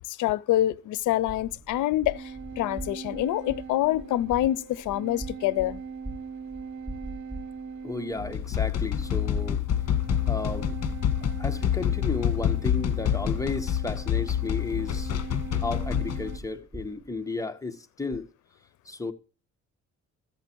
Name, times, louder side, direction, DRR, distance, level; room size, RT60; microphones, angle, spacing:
voice 1, 0.1-5.8, left 14 dB, 80° left, 0.6 m, -26 dB
sound 1, 1.0-17.2, right 1 dB, 15° right, 3.6 m, -44 dB
sound 2, 2.1-16.4, right 5 dB, 70° right, 1.5 m, -41 dB
voice 2, 7.8-9.6 10.3-10.8 11.2-15.1 15.6-18.3 18.8-19.1, left 3 dB, 10° left, 1.3 m, -33 dB
sound 3, 8.2-16.4, left 10 dB, 55° left, 1.4 m, -27 dB
13.5 x 8.2 x 4.5 m
cardioid pair, 90°, 30 cm